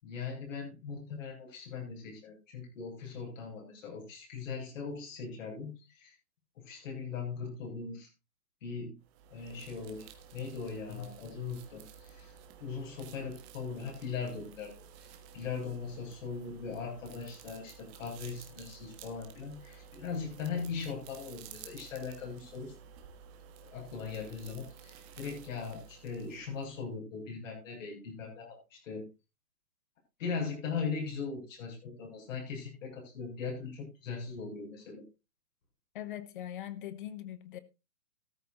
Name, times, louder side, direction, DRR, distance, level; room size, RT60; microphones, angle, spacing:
voice 1, 0.0-6.1 6.6-8.1 8.6-9.0 9.3-10.1 10.3-12.3 12.6-14.7 15.0-22.7 23.6-29.1 30.2-35.0, left 5 dB, 50° left, 7.2 m, -39 dB
sound 1, 9.0-26.9, right 7 dB, 20° right, 1.4 m, -53 dB
voice 2, 35.9-37.6, left 12 dB, 30° left, 0.9 m, -41 dB
14.5 x 13.5 x 2.5 m
hypercardioid pair, 145°, 48 cm